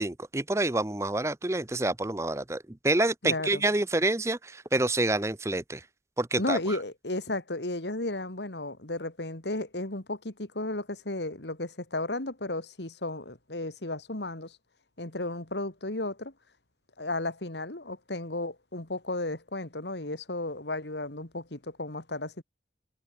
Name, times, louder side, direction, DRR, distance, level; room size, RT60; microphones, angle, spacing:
voice 1, 0.0-5.8 6.2-6.8, right 2 dB, 15° right, 0.7 m, -28 dB
voice 2, 3.2-3.6 6.4-14.6 15.0-16.3 17.0-22.4, left 2 dB, 75° left, 2.8 m, -34 dB
head